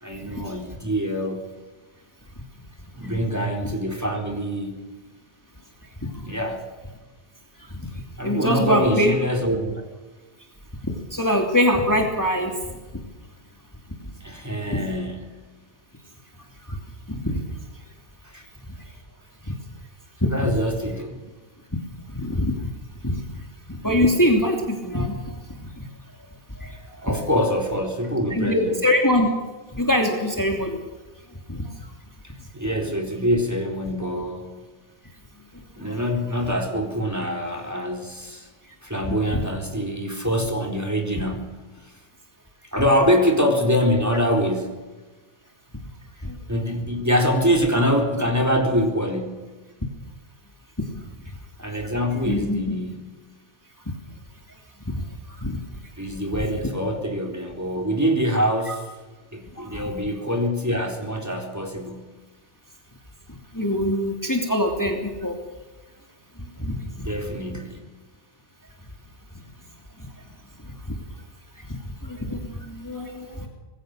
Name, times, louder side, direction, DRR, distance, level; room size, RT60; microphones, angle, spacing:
voice 1, 0.0-1.4 3.0-4.8 6.2-6.6 8.2-9.7 14.2-15.4 18.3-18.4 20.2-21.2 27.0-28.8 32.5-34.6 35.8-38.5 38.8-41.6 42.7-44.8 46.5-49.5 51.6-53.1 56.0-58.9 59.3-62.1 66.9-67.8, equal, 15° right, 2 dB, 3.9 m, -24 dB
voice 2, 8.2-9.1 10.8-12.5 14.7-14.8 17.1-17.4 20.2-20.3 22.1-22.6 23.0-23.2 23.8-25.2 25.8-25.9 26.6-26.7 27.0-27.3 28.3-29.3 29.7-30.8 31.5-31.7 46.3-46.4 52.3-52.6 54.9-55.0 55.4-55.6 58.7-58.8 59.6-59.9 63.5-65.3 66.6-66.8 72.1-73.5, left 1 dB, 15° left, 2 dB, 2.9 m, -23 dB
26.0 x 21.0 x 6.7 m, 1.2 s
omnidirectional pair, 1.1 m